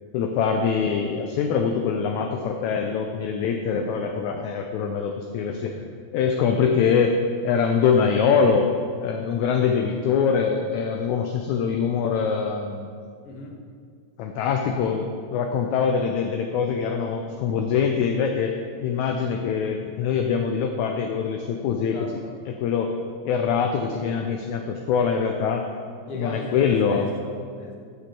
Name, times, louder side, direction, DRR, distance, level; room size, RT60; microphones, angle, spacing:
voice 1, 0.1-5.8 6.1-7.2 7.4-8.7 9.0-12.9 14.2-22.1 22.6-22.9 23.3-25.7 26.1-27.1, left 6 dB, 75° left, 4 dB, 1.9 m, -23 dB
voice 2, 13.2-13.6 21.8-22.3 26.1-27.8, left 2 dB, 55° left, 1 dB, 1.9 m, -36 dB
8.5 x 6.3 x 7.6 m, 2.2 s
omnidirectional pair, 3.7 m